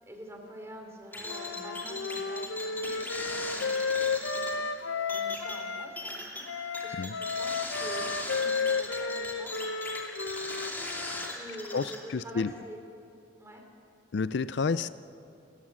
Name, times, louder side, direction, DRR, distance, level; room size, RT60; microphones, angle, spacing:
voice 1, 0.0-4.6 5.1-9.6 11.3-12.8 13.4-13.6 14.6-14.9, right 1 dB, 15° right, 2 dB, 3.1 m, -46 dB
sound 1, 1.1-12.0, left 1 dB, 10° left, 2.6 m, -39 dB
Wind instrument woodwind instrument, 1.3-5.9 6.5-11.3, left 4 dB, 75° left, 0.8 m, -33 dB
voice 2, 11.7-12.5 14.1-14.9, left 4 dB, 60° left, 15 dB, 0.4 m, -30 dB
28.5 x 15.0 x 7.3 m, 2.7 s
head